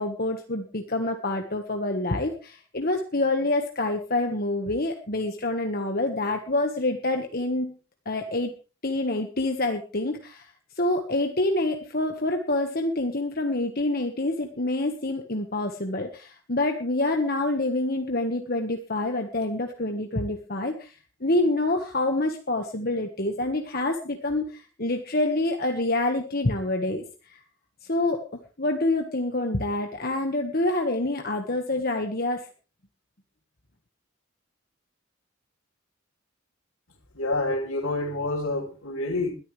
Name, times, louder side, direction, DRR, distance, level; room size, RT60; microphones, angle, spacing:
voice 1, 0.0-7.8 8.0-8.5 8.8-27.4 27.8-28.2 28.6-32.5, left 2 dB, 45° left, 4 dB, 1.5 m, -27 dB
voice 2, 37.1-39.3, left 2 dB, 80° left, -4 dB, 3.7 m, -28 dB
21.5 x 13.0 x 3.4 m, 0.34 s
head